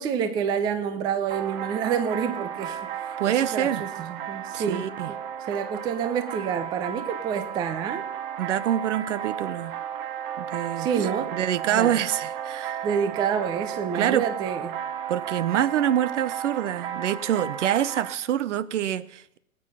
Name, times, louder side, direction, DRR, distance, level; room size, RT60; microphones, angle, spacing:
voice 1, 0.0-8.0 10.8-11.3 11.7-11.9 12.8-14.8, right 7 dB, 10° right, 10 dB, 0.5 m, -28 dB
sound 1, 1.3-18.1, right 9 dB, 40° right, 1.1 m, -34 dB
voice 2, 3.2-3.8 4.5-5.1 8.4-9.7 10.4-10.9 11.3-12.8 13.9-14.2 15.1-19.4, right 10 dB, 60° right, 19 dB, 0.9 m, -26 dB
18.5 x 8.7 x 5.6 m, 0.74 s
hypercardioid pair, 130°, 42 cm